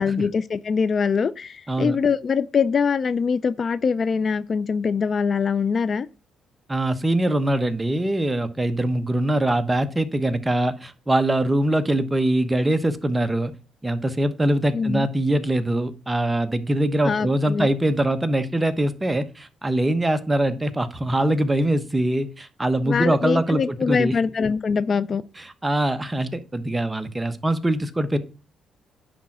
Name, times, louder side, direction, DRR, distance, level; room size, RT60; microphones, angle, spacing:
voice 1, 0.0-6.1 14.7-15.1 17.0-17.7 22.9-25.2, left 5 dB, 45° left, 0.5 m, -23 dB
voice 2, 6.7-13.5 13.8-24.2 25.4-28.2, right 1 dB, 15° right, 1.0 m, -23 dB
10.5 x 3.7 x 6.0 m
cardioid pair, 90°, 0 cm